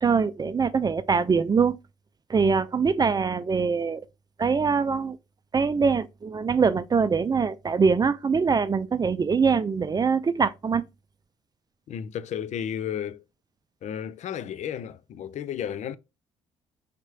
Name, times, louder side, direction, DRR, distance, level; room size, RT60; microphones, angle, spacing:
voice 1, 0.0-1.8 2.3-4.0 4.4-5.2 5.5-10.8, right 5 dB, 30° right, 0.5 m, -23 dB
voice 2, 11.9-13.2 13.8-15.9, left 9 dB, 55° left, 0.5 m, -33 dB
5.0 x 3.1 x 3.3 m
hypercardioid pair, 55°, 14 cm